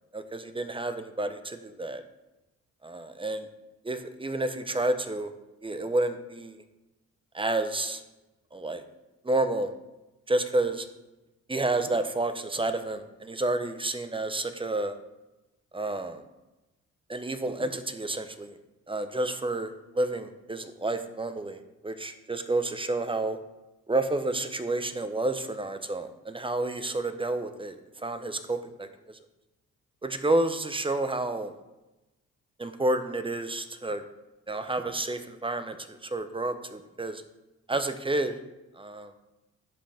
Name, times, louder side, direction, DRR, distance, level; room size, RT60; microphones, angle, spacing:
voice 1, 0.1-2.0 2.8-3.5 3.8-5.3 5.6-6.6 7.3-8.0 8.5-8.8 9.2-9.7 10.3-10.9 11.5-15.0 15.7-16.2 17.1-18.6 18.9-23.4 23.9-29.2 30.0-31.5 32.6-34.0 34.5-37.2 37.7-38.4 38.7-39.1, right 2 dB, 15° right, 9 dB, 0.7 m, -30 dB
11.0 x 5.3 x 3.5 m, 1.0 s
cardioid pair, 70°, 31 cm